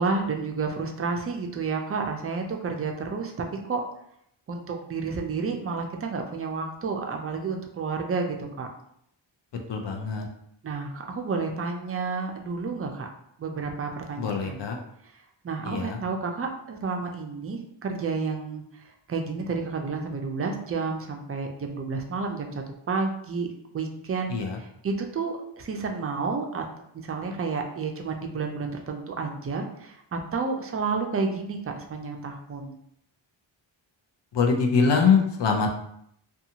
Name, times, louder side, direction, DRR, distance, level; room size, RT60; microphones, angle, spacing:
voice 1, 0.0-3.3 3.7-3.8 4.5-8.7 10.6-13.1 13.4-14.7 15.4-23.5 23.7-26.6 26.9-32.7, right 4 dB, 30° right, 3 dB, 0.4 m, -30 dB
voice 2, 9.7-10.3 14.2-14.8 15.6-16.0 24.3-24.6 34.3-35.7, left 5 dB, 60° left, 2 dB, 0.6 m, -23 dB
2.6 x 2.3 x 2.8 m, 0.72 s
wide cardioid pair, 90°, 48 cm